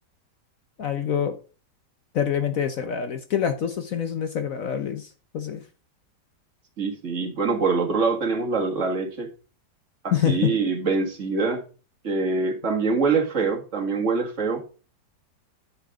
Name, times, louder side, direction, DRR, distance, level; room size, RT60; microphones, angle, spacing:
voice 1, 0.8-1.4 2.1-5.6 10.1-10.5, left 8 dB, 60° left, 1.1 m, -26 dB
voice 2, 6.8-9.3 10.0-11.6 12.0-14.6, right 4 dB, 45° right, 2.0 m, -24 dB
10.0 x 5.8 x 3.6 m
omnidirectional pair, 1.8 m